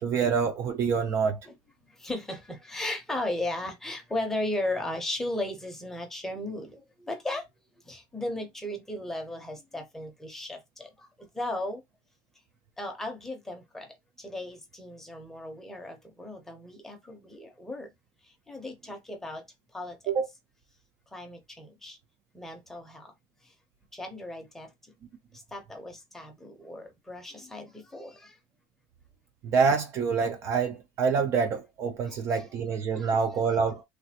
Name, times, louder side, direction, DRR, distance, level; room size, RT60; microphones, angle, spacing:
voice 1, 0.0-1.4 20.1-20.3 29.4-33.8, right 5 dB, 35° right, 0.4 m, -26 dB
voice 2, 1.8-7.5 7.8-11.8 12.8-17.9 18.2-19.4 19.7-20.0 21.1-22.0 22.3-23.1 23.4-23.5 23.9-24.9 25.3-28.4 32.1-32.5 32.9-33.1, left 1 dB, 5° left, 0.6 m, -36 dB
3.2 x 2.3 x 2.7 m
cardioid pair, 180°, 8 cm